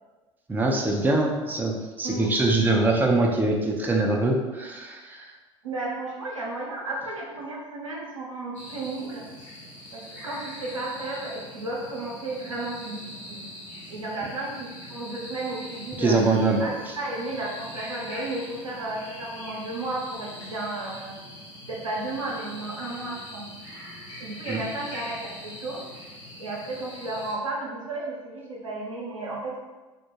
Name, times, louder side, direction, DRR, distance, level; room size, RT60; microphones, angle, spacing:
voice 1, 0.5-5.3 16.0-16.6 24.5-24.6, right 2 dB, 10° right, 0 dB, 0.4 m, -23 dB
voice 2, 5.6-9.2 9.9-13.4 13.9-16.2 16.6-21.1 21.7-23.5 24.2-25.8 26.4-29.6, right 2 dB, 90° right, -3 dB, 0.5 m, -33 dB
sound 1, 8.5-27.3, equal, 80° left, 0.9 m, -42 dB
2.2 x 2.1 x 3.0 m, 1.2 s
figure-of-eight pair, 70°, 16 cm